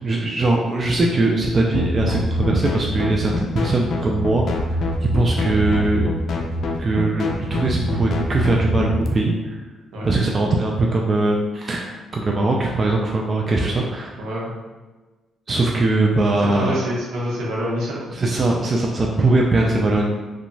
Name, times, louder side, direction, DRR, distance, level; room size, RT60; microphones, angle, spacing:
voice 1, 0.0-4.8 5.1-6.1 6.8-9.6 10.0-14.1 15.5-16.8 18.1-20.0, right 2 dB, 35° right, -1 dB, 0.3 m, -21 dB
sound 1, 1.7-9.1, left 1 dB, 65° left, 0.4 m, -24 dB
voice 2, 14.2-14.5 16.4-18.0 19.7-19.9, equal, 80° right, -5 dB, 0.8 m, -26 dB
2.8 x 2.2 x 2.6 m, 1.2 s
cardioid pair, 90°, 0 cm